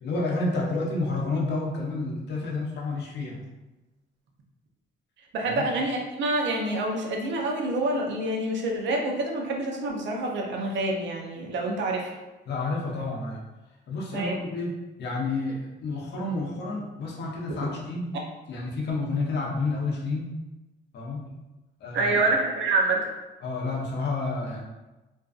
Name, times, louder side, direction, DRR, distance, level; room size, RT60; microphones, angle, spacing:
voice 1, 0.0-3.4 5.4-5.6 12.5-13.4 13.9-14.7 15.0-18.1 18.5-20.2 20.9-21.2 21.8-22.2 23.4-24.6, left 3 dB, 60° left, -2 dB, 0.7 m, -30 dB
voice 2, 5.3-12.1 14.1-14.4 21.9-23.1, right 2 dB, 65° right, 0 dB, 0.6 m, -27 dB
2.5 x 2.2 x 2.4 m, 1.1 s
cardioid pair, 90°, 20 cm